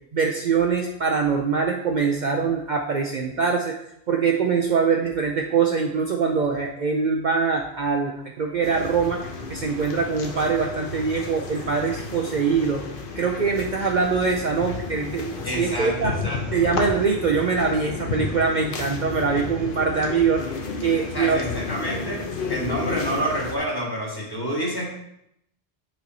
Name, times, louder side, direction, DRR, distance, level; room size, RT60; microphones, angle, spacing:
voice 1, 0.1-3.8 4.1-12.8 13.2-16.1 16.5-20.4 20.8-21.4, right 5 dB, 50° right, 1 dB, 0.6 m, -23 dB
sound 1, 8.6-23.6, left 4 dB, 55° left, 1.0 m, -32 dB
voice 2, 15.4-16.6 21.1-24.9, equal, 20° left, -3 dB, 1.5 m, -28 dB
7.3 x 4.4 x 4.0 m, 0.78 s
omnidirectional pair, 1.1 m